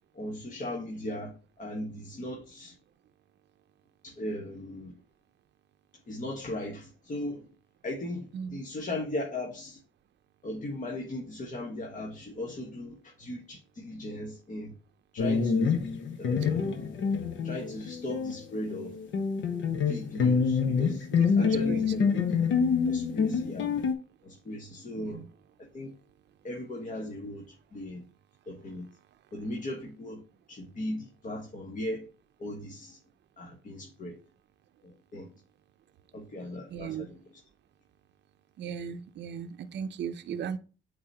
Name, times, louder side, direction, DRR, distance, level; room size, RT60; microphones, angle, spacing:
voice 1, 0.1-1.3 1.6-2.7 4.0-4.9 6.1-7.5 7.8-9.8 10.4-14.7 15.1-15.8 16.2-16.9 17.4-18.9 19.8-22.1 22.9-23.7 24.2-25.3 25.6-25.9 26.4-28.0 28.5-28.9 29.3-30.2 30.5-32.1 32.4-33.0 33.4-34.2 34.8-35.3 36.1-37.4, left 1 dB, 40° left, 1.5 m, -38 dB
sound 1, 15.2-18.4 18.7-23.9, left 6 dB, 75° left, 1.1 m, -27 dB
voice 2, 21.1-22.3 25.0-25.2 36.7-37.1 38.6-40.6, right 8 dB, 60° right, 0.6 m, -37 dB
8.6 x 4.0 x 2.9 m
cardioid pair, 90°, 20 cm